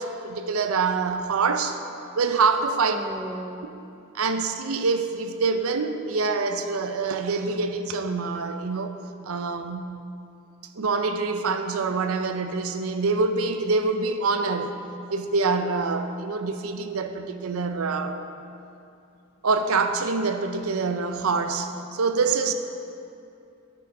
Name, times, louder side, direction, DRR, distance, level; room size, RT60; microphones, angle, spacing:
voice 1, 0.0-1.8 2.2-3.0 4.1-9.0 9.3-10.0 10.8-14.8 15.1-18.2 19.4-22.5, right 4 dB, 85° right, 8 dB, 0.6 m, -25 dB
voice 2, 2.9-3.8, right 1 dB, 10° right, 6 dB, 0.3 m, -36 dB
10.0 x 8.7 x 3.8 m, 2.6 s
head